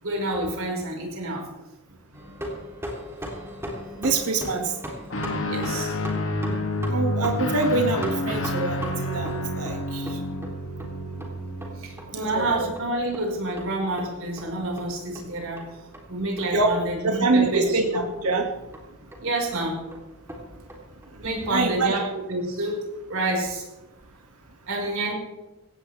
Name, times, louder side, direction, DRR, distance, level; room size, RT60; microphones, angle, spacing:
voice 1, 0.0-1.5 5.4-5.9 11.8-15.7 16.1-18.0 19.2-19.8 21.2-22.8 23.1-23.6 24.7-25.1, right 2 dB, 65° right, 1 dB, 5.1 m, -28 dB
sound 1, 2.1-22.0, equal, 10° right, 3.3 m, -40 dB
voice 2, 4.0-4.7 6.4-6.6 6.9-10.2 12.1-12.7 16.5-16.7 17.0-18.4 21.2-22.0, right 3 dB, 85° right, 2 dB, 2.2 m, -25 dB
Guitar, 5.1-12.8, left 1 dB, 60° left, 2.4 m, -29 dB
18.5 x 16.0 x 3.5 m, 1.0 s
head